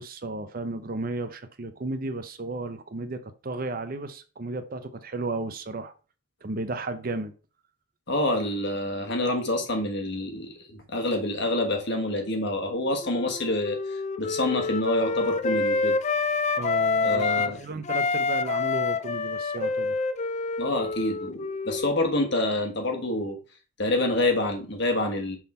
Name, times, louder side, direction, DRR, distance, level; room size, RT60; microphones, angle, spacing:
voice 1, 0.0-5.9 6.4-7.3 16.6-20.0, right 2 dB, 45° right, 0.6 m, -34 dB
voice 2, 8.1-16.0 17.0-17.6 20.6-23.4 23.8-25.4, left 1 dB, 55° left, 1.4 m, -27 dB
Wind instrument woodwind instrument, 13.0-17.5 17.8-22.4, left 4 dB, 35° left, 0.3 m, -27 dB
6.0 x 3.7 x 4.2 m
head